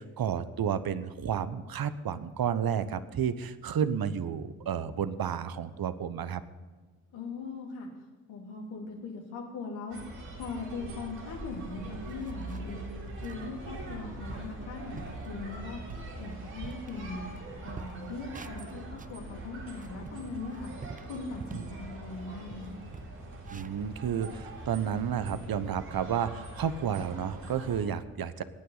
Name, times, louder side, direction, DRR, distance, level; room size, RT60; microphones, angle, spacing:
voice 1, 0.0-6.4 21.5-21.6 23.5-28.4, right 8 dB, 50° right, 14 dB, 1.0 m, -31 dB
voice 2, 7.1-7.9 8.3-10.0 10.3-12.8 13.2-15.8 16.2-17.2 17.6-20.7 21.0-22.8, left 4 dB, 80° left, -2 dB, 3.0 m, -40 dB
sound 1, 9.9-27.8, right 2 dB, 80° right, 3.9 m, -43 dB
sound 2, 11.6-11.7 12.0-12.8 13.2-13.4 13.9-14.0 14.3-14.6 15.0-15.3 15.7-17.4 17.7-19.2 19.6-21.8 22.1-22.2 22.5-24.7, right 5 dB, 20° right, 0.5 m, -46 dB
20.5 x 9.3 x 4.0 m, 1.4 s
hypercardioid pair, 45°, 45 cm